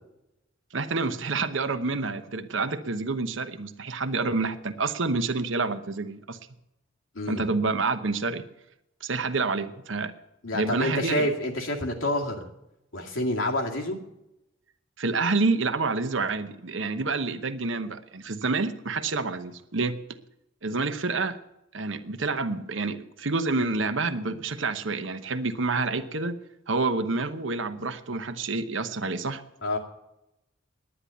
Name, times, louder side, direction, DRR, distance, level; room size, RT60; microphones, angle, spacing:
voice 1, 0.7-6.4 7.3-8.4 9.0-10.1 10.5-11.3 15.0-20.0 20.6-21.4 21.7-26.4 26.7-29.4, right 3 dB, 70° right, 10 dB, 1.0 m, -28 dB
voice 2, 7.1-7.5 10.4-12.5 12.9-14.0 29.6-29.8, left 1 dB, 90° left, 1 dB, 2.3 m, -28 dB
10.0 x 9.9 x 9.1 m, 0.87 s
head